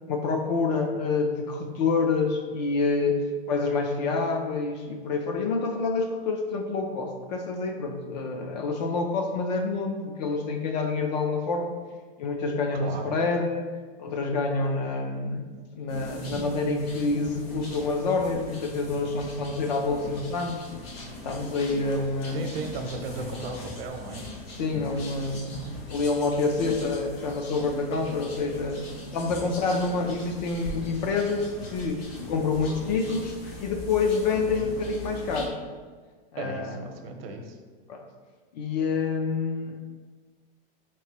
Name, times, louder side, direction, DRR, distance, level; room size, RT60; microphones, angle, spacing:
voice 1, 0.1-3.2 3.5-11.8 12.2-13.6 14.0-20.6 21.2-22.5 24.6-25.5 25.9-32.0 32.3-33.3 33.6-35.7 36.3-36.8 37.9-38.0 38.5-39.8, left 4 dB, 45° left, 3 dB, 0.5 m, -27 dB
voice 2, 12.7-13.1 22.3-24.2 34.5-34.7 36.4-37.6, right 3 dB, 75° right, 4 dB, 0.8 m, -36 dB
sound 1, 15.9-35.5, left 1 dB, 80° left, 1.2 m, -40 dB
4.4 x 3.1 x 2.9 m, 1.5 s
supercardioid pair, 165°, 30 cm